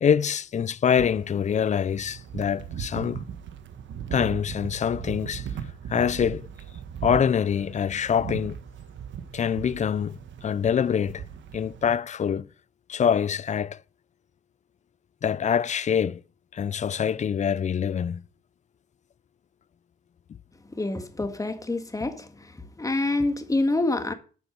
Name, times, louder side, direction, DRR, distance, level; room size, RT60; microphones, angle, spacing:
voice 1, 0.0-3.2 4.1-5.5 5.9-6.5 7.0-8.6 9.3-11.2 11.5-12.5 12.9-13.8 15.2-16.2 16.5-18.2, left 8 dB, 35° left, 0.5 m, -25 dB
sound 1, 0.9-12.0, right 8 dB, 70° right, 1.5 m, -38 dB
voice 2, 20.7-22.5 22.8-24.1, left 2 dB, 15° left, 1.8 m, -27 dB
10.0 x 8.1 x 6.0 m
cardioid pair, 90°, 20 cm